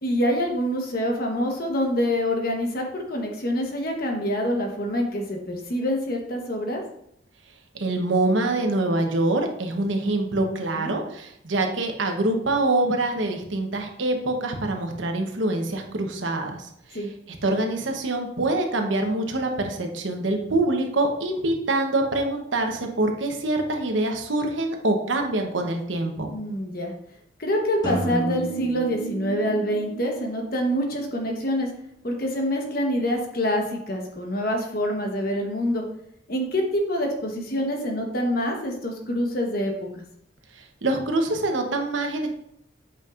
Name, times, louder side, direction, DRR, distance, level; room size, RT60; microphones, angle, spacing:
voice 1, 0.0-6.8 10.8-10.9 16.9-17.1 26.3-26.9 27.4-31.7 32.0-35.8 36.3-40.0, equal, 50° left, 2 dB, 1.1 m, -26 dB
voice 2, 7.7-16.7 17.4-26.3 40.5-42.3, right 2 dB, 90° right, 3 dB, 1.0 m, -25 dB
sound 1, 27.8-31.6, right 2 dB, 20° left, 1.5 m, -32 dB
8.1 x 5.3 x 2.5 m, 0.74 s
head